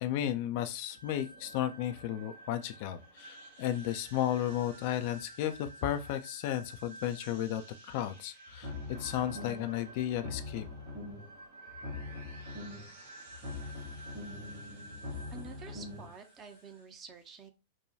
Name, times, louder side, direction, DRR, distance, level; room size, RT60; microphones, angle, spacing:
voice 1, 0.0-8.7 9.0-10.7, left 12 dB, 50° left, 0.3 m, -34 dB
sound 1, 0.9-16.8, right 2 dB, 75° right, 1.4 m, -52 dB
sound 2, 8.5-9.8 10.1-11.4 11.7-13.0 13.3-16.1, left 3 dB, 50° right, 2.1 m, -43 dB
voice 2, 15.3-17.5, right 5 dB, 30° right, 0.7 m, -49 dB
4.6 x 2.2 x 2.6 m
figure-of-eight pair, 90°, 0 cm